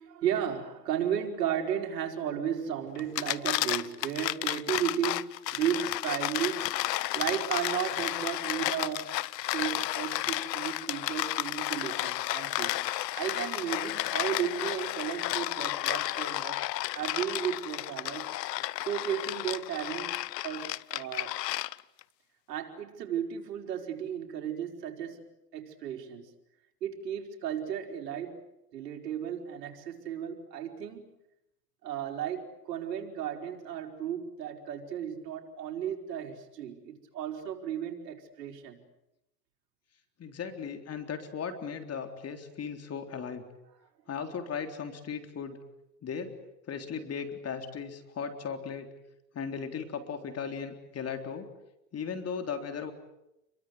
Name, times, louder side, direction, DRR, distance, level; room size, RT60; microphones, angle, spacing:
voice 1, 0.0-6.7 7.1-16.6 16.9-18.3 18.8-20.2 20.4-21.3 22.5-25.3 25.5-26.3 26.8-28.4 28.7-31.0 31.8-38.8, right 9 dB, 85° right, 2 dB, 4.9 m, -34 dB
sound 1, 3.0-22.0, left 16 dB, 85° left, 1.0 m, -32 dB
voice 2, 40.2-43.4 44.1-45.6 46.0-46.3 46.7-48.9 49.3-51.5 51.9-52.9, left 6 dB, 30° left, 6 dB, 3.8 m, -37 dB
29.5 x 23.5 x 8.1 m, 0.87 s
hypercardioid pair, 105°, 48 cm